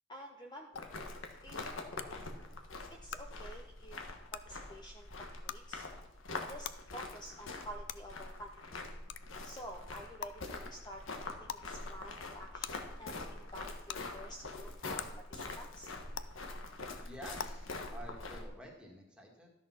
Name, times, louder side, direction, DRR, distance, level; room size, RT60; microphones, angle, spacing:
voice 1, 0.1-0.9 1.4-1.7 3.0-4.0 4.3-5.1 5.4-5.9 6.5-8.5 9.4-15.0 15.3-15.9, equal, 20° left, 1 dB, 0.8 m, -50 dB
sound 1, 0.7-18.4, left 2 dB, 90° left, 1.5 m, -44 dB
sound 2, 0.8-0.9 2.0-2.1 3.1-3.2 4.3-4.4 5.5-5.6 6.6-6.7 7.9-8.0 9.1-9.2 10.2-10.3 11.5-11.6 12.6-12.7 13.9-14.0 15.0-15.1 16.1-16.2 17.4-17.5, left 8 dB, 60° left, 0.5 m, -40 dB
voice 2, 17.0-19.5, right 1 dB, 5° right, -1 dB, 1.9 m, -50 dB
13.0 x 6.4 x 5.7 m, 0.92 s
head